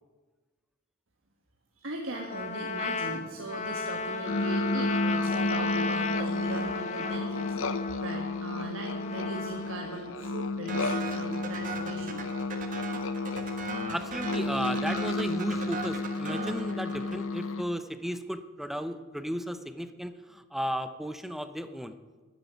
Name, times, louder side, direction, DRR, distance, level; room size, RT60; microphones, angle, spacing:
voice 1, 1.8-12.5, right 2 dB, 75° right, 1 dB, 1.5 m, -39 dB
Trumpet, 2.1-10.2, left 4 dB, 35° left, 0.8 m, -35 dB
sound 1, 4.3-17.6, left 2 dB, 80° left, 0.8 m, -32 dB
sound 2, 10.7-17.4, right 4 dB, 40° right, 1.7 m, -39 dB
voice 2, 13.9-22.0, equal, ahead, 9 dB, 0.8 m, -35 dB
12.5 x 10.0 x 9.3 m, 1.3 s
head